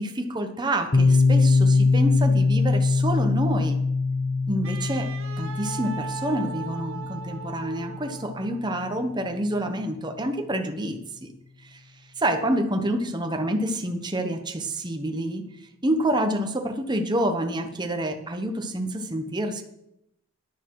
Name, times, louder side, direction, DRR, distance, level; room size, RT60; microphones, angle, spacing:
voice 1, 0.0-3.8 4.5-5.1 5.4-11.3 11.6-11.8 12.2-15.4 15.8-19.6, right 1 dB, 20° right, 5 dB, 1.0 m, -28 dB
Piano, 0.9-8.4, left 3 dB, 45° left, 1.2 m, -23 dB
Wind instrument woodwind instrument, 4.6-8.7, right 7 dB, 65° right, 1.1 m, -38 dB
12.0 x 10.5 x 4.7 m, 0.83 s
head